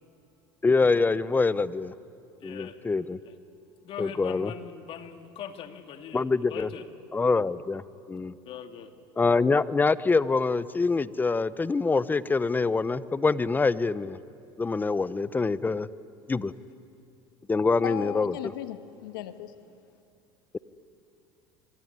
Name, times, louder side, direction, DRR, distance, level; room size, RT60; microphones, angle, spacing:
voice 1, 0.6-1.9 2.4-3.2 4.0-4.5 6.1-6.7 7.1-7.8 8.1-8.3 9.2-14.2 14.6-15.9 16.3-16.5 17.5-18.5, left 4 dB, 15° left, 17 dB, 0.8 m, -25 dB
voice 2, 2.4-2.8 3.2-3.4 3.8-6.9 8.5-8.9, left 8 dB, 50° left, 6 dB, 2.4 m, -41 dB
voice 3, 17.8-19.5, left 12 dB, 85° left, 10 dB, 1.5 m, -36 dB
25.5 x 23.0 x 9.6 m, 2.6 s
supercardioid pair, 95°, 11 cm